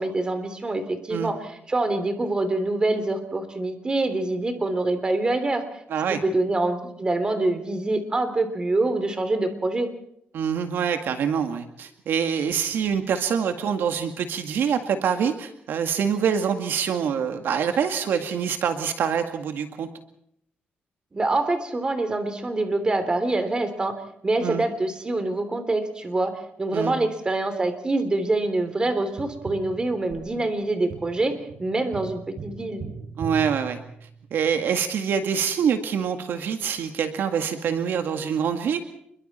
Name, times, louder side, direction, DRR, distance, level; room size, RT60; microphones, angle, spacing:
voice 1, 0.0-5.6 6.2-9.9 21.1-32.8, right 2 dB, 25° right, 9 dB, 3.3 m, -25 dB
voice 2, 10.3-19.9 24.4-24.6 26.7-26.9 33.2-33.8 34.3-38.8, right 7 dB, 80° right, 6 dB, 2.0 m, -25 dB
Tap, 29.2-34.5 37.1-37.2, right 5 dB, 60° right, 5.8 m, -39 dB
28.0 x 22.5 x 4.4 m, 0.70 s
cardioid pair, 120°, 4 cm